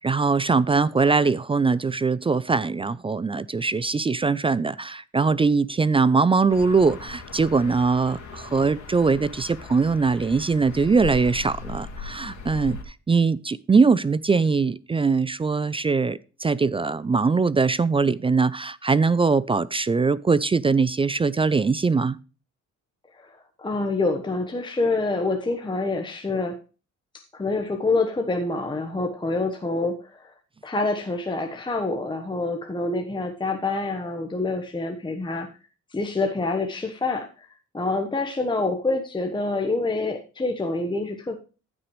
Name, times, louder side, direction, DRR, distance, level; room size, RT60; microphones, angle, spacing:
voice 1, 0.0-12.8 13.1-22.2, right 4 dB, 20° right, 0.3 m, -21 dB
sound 1, 6.5-12.8, left 4 dB, 65° left, 2.4 m, -38 dB
voice 2, 23.2-26.6 27.3-30.3 30.6-35.5 35.9-37.5 37.7-41.3, left 3 dB, 15° left, 1.1 m, -26 dB
14.5 x 6.0 x 3.1 m
cardioid pair, 90°, 30 cm